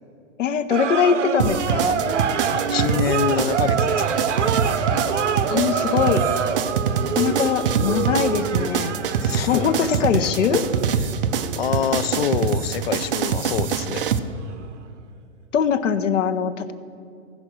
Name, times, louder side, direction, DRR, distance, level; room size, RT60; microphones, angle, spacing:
voice 1, 0.4-2.0 5.5-6.3 7.2-9.0 9.5-10.7 15.5-16.7, left 7 dB, 75° left, 11 dB, 0.9 m, -22 dB
sound 1, 0.7-14.1 14.4-14.5, right 6 dB, 70° right, 0.9 m, -26 dB
sound 2, 1.4-14.2, right 7 dB, 50° right, 0.6 m, -24 dB
voice 2, 2.5-4.2 9.2-10.3 11.6-14.1, left 9 dB, 55° left, 14 dB, 0.4 m, -26 dB
15.5 x 5.3 x 6.1 m, 2.5 s
hypercardioid pair, 165°, 37 cm